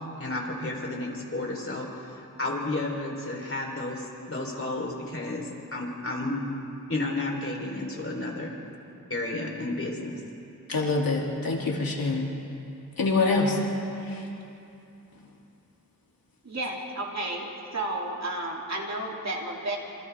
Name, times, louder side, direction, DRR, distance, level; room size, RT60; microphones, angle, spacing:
voice 1, 0.2-1.9 2.2-5.4 5.7-6.4 6.9-8.5 9.1-10.2, left 2 dB, 40° left, -1 dB, 3.8 m, -32 dB
voice 2, 10.7-12.3 13.0-13.6 14.1-14.2, left 3 dB, 85° left, -2 dB, 2.9 m, -25 dB
voice 3, 16.4-17.5 17.7-19.8, right 1 dB, 50° right, -2 dB, 3.0 m, -32 dB
27.0 x 27.0 x 3.6 m, 2.8 s
wide cardioid pair, 85°, 35 cm